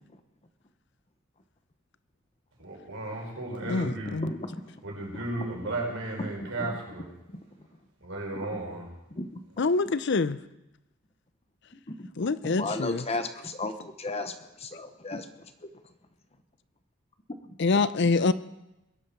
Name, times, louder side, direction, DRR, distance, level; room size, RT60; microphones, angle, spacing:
voice 1, 2.6-4.2 4.8-7.1 8.0-8.9, right 2 dB, 70° right, -2 dB, 5.4 m, -34 dB
voice 2, 3.7-4.3 9.6-10.4 12.2-13.0 17.6-18.3, left 3 dB, 55° left, 15 dB, 0.5 m, -25 dB
voice 3, 4.2-4.7 5.1-5.5 6.2-6.3 6.6-6.8 9.1-9.3 11.9-12.1 12.6-15.3 17.4-17.6, left 2 dB, 30° left, 8 dB, 0.9 m, -35 dB
21.5 x 8.2 x 5.9 m, 0.94 s
head